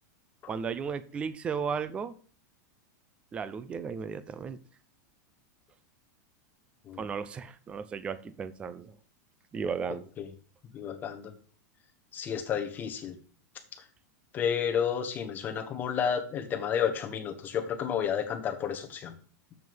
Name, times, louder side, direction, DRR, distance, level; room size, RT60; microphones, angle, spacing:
voice 1, 0.5-2.1 3.3-4.6 7.0-9.0 9.5-10.1, right 6 dB, 10° right, 14 dB, 0.4 m, -35 dB
voice 2, 10.7-11.3 12.1-13.2 14.3-19.1, left 8 dB, 20° left, 4 dB, 1.1 m, -31 dB
7.1 x 6.3 x 5.4 m, 0.42 s
supercardioid pair, 170°, 9 cm